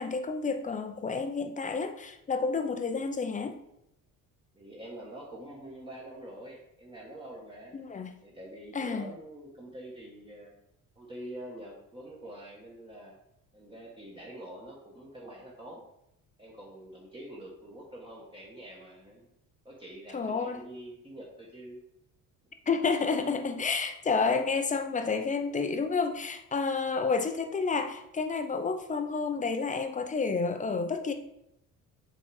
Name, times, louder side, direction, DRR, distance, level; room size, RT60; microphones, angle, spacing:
voice 1, 0.0-3.6 7.7-8.1 8.7-9.1 20.1-20.6 22.7-31.1, left 4 dB, 25° left, 7 dB, 0.5 m, -30 dB
voice 2, 4.5-7.7 8.2-10.5 11.0-13.1 13.5-15.8 16.4-19.3 19.6-21.8, right 1 dB, 15° right, -4 dB, 1.1 m, -45 dB
6.3 x 3.9 x 4.7 m, 0.80 s
cardioid pair, 150°, 33 cm